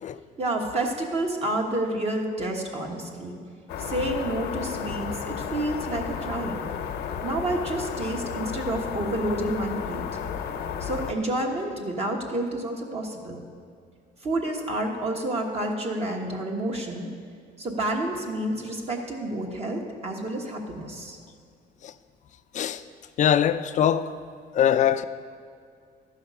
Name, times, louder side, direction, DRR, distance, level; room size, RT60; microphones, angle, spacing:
voice 1, 0.4-3.4 3.8-6.7 7.2-10.2 10.8-13.4 14.2-17.1 17.6-21.2, right 1 dB, 40° right, 1.3 m, -29 dB
sound 1, 3.7-11.1, left 7 dB, 80° left, 0.8 m, -33 dB
voice 2, 23.2-24.1 24.5-25.0, left 9 dB, 45° left, 0.4 m, -22 dB
13.0 x 5.7 x 5.5 m
cardioid pair, 110°, 17 cm